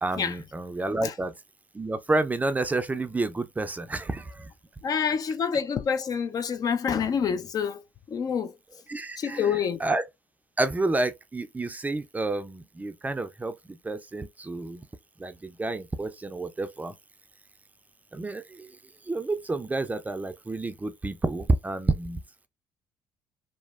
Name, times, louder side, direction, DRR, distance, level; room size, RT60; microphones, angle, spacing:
voice 1, 0.0-1.3 1.7-4.5 8.9-9.5 9.8-10.0 10.6-14.8 15.2-16.9 18.1-18.8 19.0-22.2, right 2 dB, 20° right, 0.4 m, -29 dB
voice 2, 4.8-8.6 9.2-9.8, left 7 dB, 45° left, 0.4 m, -27 dB
2.9 x 2.1 x 2.3 m
hypercardioid pair, 60°, 9 cm